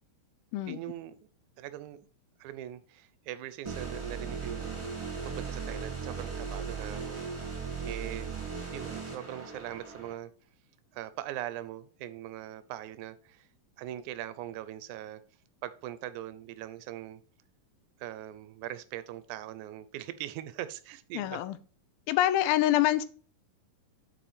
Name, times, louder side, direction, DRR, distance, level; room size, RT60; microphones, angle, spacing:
voice 1, 0.7-1.2 1.6-2.1 2.4-4.9 5.2-7.2 7.5-8.4 8.7-10.3 10.9-13.5 13.8-15.2 15.6-17.2 18.0-21.4, right 13 dB, 80° right, 1.8 m, -41 dB
sound 1, 3.6-10.1, right 5 dB, 15° right, 1.3 m, -37 dB
voice 2, 21.1-21.6 22.1-23.1, left 13 dB, 85° left, 2.5 m, -25 dB
8.9 x 4.4 x 5.0 m
omnidirectional pair, 4.1 m